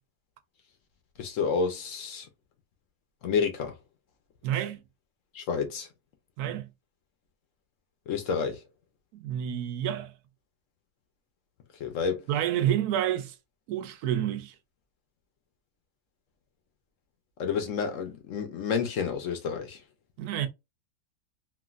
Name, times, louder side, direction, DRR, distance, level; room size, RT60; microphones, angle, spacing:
voice 1, 1.2-2.3 3.2-3.8 5.3-5.9 8.1-8.6 11.8-12.2 17.4-19.8, left 6 dB, 65° left, 1.0 m, -29 dB
voice 2, 4.4-4.8 6.4-6.7 9.1-10.1 12.3-13.3 13.7-14.5 20.2-20.5, right 11 dB, 85° right, 1.1 m, -29 dB
3.1 x 2.5 x 2.4 m
omnidirectional pair, 1.6 m